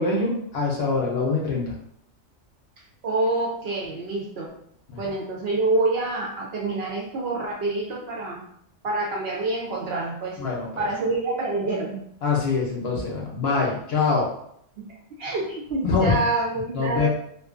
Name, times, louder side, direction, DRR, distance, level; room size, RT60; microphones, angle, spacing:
voice 1, 0.0-1.6 4.9-5.0 10.4-10.8 12.2-14.3 15.8-16.2 16.7-17.1, left 4 dB, 65° left, -2 dB, 0.7 m, -24 dB
voice 2, 3.0-4.5 5.0-8.4 8.8-10.4 10.8-12.0 14.9-17.1, right 2 dB, 65° right, -2 dB, 0.7 m, -27 dB
2.5 x 2.2 x 2.4 m, 0.69 s
omnidirectional pair, 1.3 m